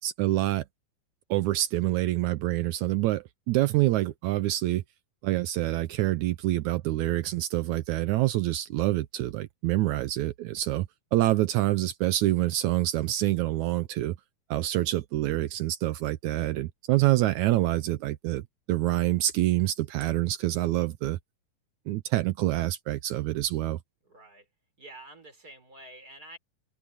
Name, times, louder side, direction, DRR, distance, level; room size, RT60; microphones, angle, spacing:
voice 1, 0.0-0.6 1.3-4.8 5.2-14.2 14.5-18.4 18.7-21.2 21.9-23.8, right 16 dB, 80° right, 1.8 m, -26 dB
voice 2, 24.0-24.5 24.8-26.4, right 1 dB, 25° right, 6.2 m, -48 dB
omnidirectional pair, 3.9 m